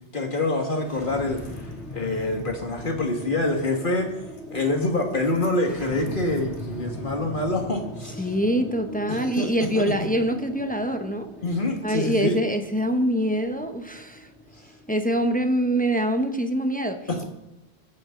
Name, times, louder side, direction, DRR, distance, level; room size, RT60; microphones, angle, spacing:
voice 1, 0.1-4.2 4.5-8.3 9.1-9.5 9.8-9.9 11.4-12.4 17.1-17.3, left 2 dB, 50° left, 3 dB, 2.0 m, -26 dB
sound 1, 0.8-16.0, equal, 80° left, 3.1 m, -40 dB
voice 2, 8.2-11.3 11.8-14.3 14.9-17.0, equal, 10° left, 6 dB, 0.9 m, -24 dB
22.0 x 8.6 x 3.9 m, 0.89 s
omnidirectional pair, 1.1 m